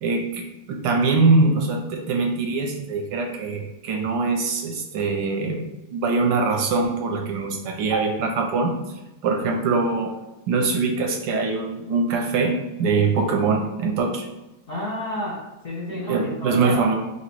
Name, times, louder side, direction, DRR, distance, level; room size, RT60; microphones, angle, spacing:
voice 1, 0.0-5.6 5.9-8.7 9.2-10.1 10.5-14.3 16.1-16.9, right 3 dB, 70° right, 2 dB, 1.1 m, -23 dB
voice 2, 14.7-16.9, left 1 dB, 40° left, -7 dB, 1.0 m, -31 dB
3.0 x 3.0 x 4.4 m, 1.0 s
omnidirectional pair, 2.0 m